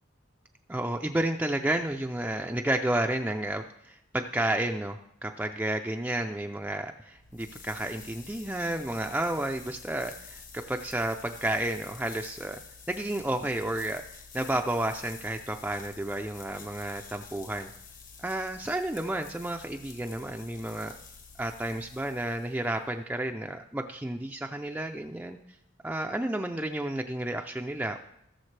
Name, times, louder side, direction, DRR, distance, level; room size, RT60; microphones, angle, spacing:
voice 1, 0.7-12.6 12.9-14.0 14.3-17.7 18.2-20.9 21.4-25.4 25.8-28.0, right 1 dB, 10° right, 3 dB, 0.4 m, -31 dB
sound 1, 7.1-22.9, left 5 dB, 45° left, 1.2 m, -49 dB
18.0 x 6.6 x 3.3 m, 0.77 s
head